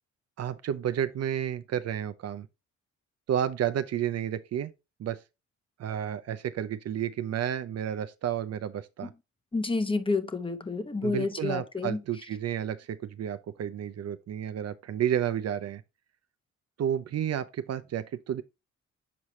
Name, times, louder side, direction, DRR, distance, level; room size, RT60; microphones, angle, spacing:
voice 1, 0.4-2.5 3.3-4.7 5.0-5.2 5.8-9.1 11.0-15.8 16.8-18.4, right 9 dB, 55° right, 0.7 m, -31 dB
voice 2, 9.5-12.0, left 3 dB, 15° left, 1.0 m, -29 dB
7.1 x 4.7 x 3.1 m
cardioid pair, 90°, 30 cm